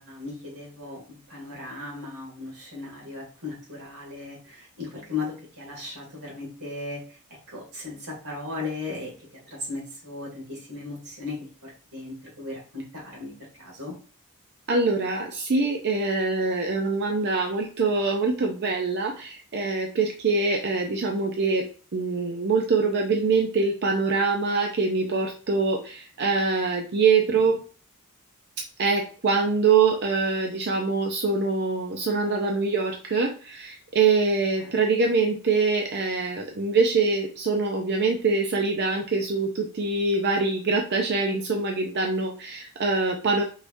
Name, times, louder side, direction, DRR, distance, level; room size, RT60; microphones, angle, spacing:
voice 1, 0.0-7.2 7.5-14.0 34.6-34.8, left 3 dB, 80° right, -2 dB, 2.3 m, -37 dB
voice 2, 14.7-27.6 28.8-43.4, right 4 dB, 50° right, 3 dB, 0.5 m, -24 dB
4.9 x 3.5 x 2.5 m, 0.38 s
head